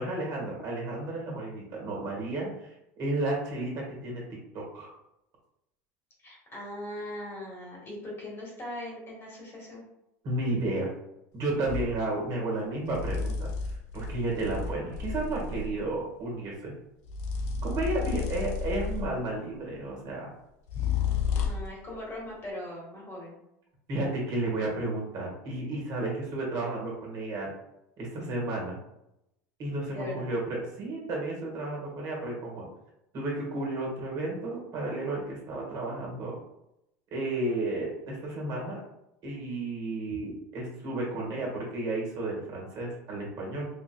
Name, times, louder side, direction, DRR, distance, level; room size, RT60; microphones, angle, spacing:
voice 1, 0.0-4.2 4.5-4.9 10.2-10.9 11.3-16.7 17.6-20.3 23.9-27.5 28.0-28.8 29.6-32.7 33.1-36.3 37.1-38.8 39.2-43.7, right 2 dB, 50° right, -2 dB, 1.4 m, -32 dB
voice 2, 6.2-9.8 17.8-18.2 20.7-20.9 21.4-23.4 29.9-30.3 40.1-40.2, left 1 dB, 30° left, -3 dB, 1.5 m, -40 dB
sound 1, 11.6-12.0 12.9-15.9 17.1-19.3 20.7-21.8, left 6 dB, 75° left, 0.4 m, -31 dB
3.8 x 2.6 x 2.2 m, 0.84 s
supercardioid pair, 100°, 8 cm